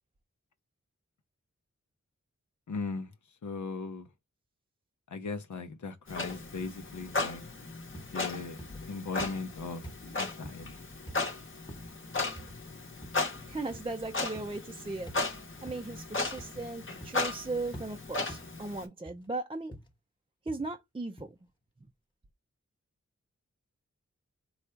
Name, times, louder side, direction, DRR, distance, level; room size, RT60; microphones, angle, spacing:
voice 1, 2.7-3.1 3.4-4.1 5.1-7.4 8.1-8.6 8.9-9.8 10.2-10.8, left 4 dB, 85° left, 0.7 m, -38 dB
Clock, 6.1-18.8, left 3 dB, 45° left, 0.9 m, -36 dB
sound 1, 7.9-8.2 8.6-8.9 9.2-9.6 9.8-10.0 10.4-10.7 11.1-11.3 11.7-11.9 12.4-12.6 13.0-13.3 13.7-13.9 14.4-14.6 15.1-15.3 15.7-15.9 16.4-16.7 17.0-17.3 17.7-17.9 18.3-18.6 19.0-19.3 19.7-19.9 20.5-20.7 21.2-21.3, equal, 15° left, 1.0 m, -47 dB
voice 2, 13.5-15.1 15.6-19.7 20.5-21.3, right 2 dB, 20° right, 0.4 m, -37 dB
3.9 x 2.3 x 4.4 m
wide cardioid pair, 70°, 29 cm